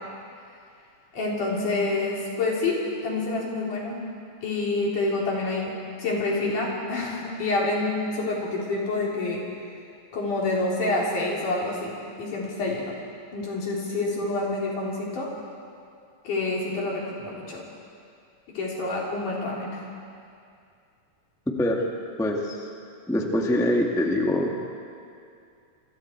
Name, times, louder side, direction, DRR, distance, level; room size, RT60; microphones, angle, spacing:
voice 1, 1.1-4.0 4.4-5.7 6.0-9.4 10.1-13.0 13.3-15.3 16.3-17.6 18.5-19.8, left 2 dB, 75° left, -3 dB, 5.2 m, -27 dB
voice 2, 22.2-22.6 23.1-24.6, left 1 dB, ahead, 0 dB, 1.1 m, -24 dB
28.0 x 24.0 x 4.6 m, 2.4 s
omnidirectional pair, 3.6 m